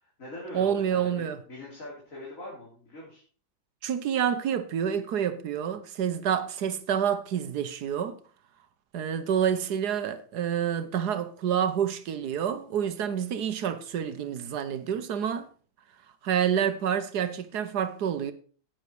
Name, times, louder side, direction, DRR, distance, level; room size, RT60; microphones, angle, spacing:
voice 1, 0.0-3.2, left 1 dB, 55° left, 4.0 m, -43 dB
voice 2, 0.5-1.4 3.8-8.2 8.9-15.5 16.2-18.3, right 8 dB, 80° right, 1.5 m, -28 dB
10.5 x 9.1 x 4.7 m
omnidirectional pair, 1.7 m